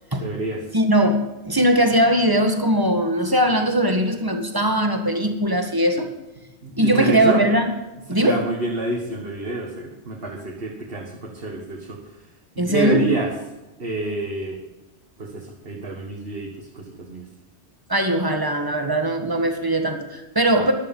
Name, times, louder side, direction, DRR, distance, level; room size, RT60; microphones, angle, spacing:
voice 1, 0.2-0.6 6.6-7.4 8.2-12.2 12.6-13.3 13.8-14.6 15.2-17.2 20.6-20.7, right 2 dB, 55° right, -1 dB, 2.0 m, -28 dB
voice 2, 0.7-6.1 6.8-7.7 8.1-8.4 12.6-13.0 17.9-20.7, right 1 dB, 20° right, 5 dB, 1.8 m, -20 dB
14.5 x 11.5 x 5.5 m, 1.1 s
omnidirectional pair, 1.2 m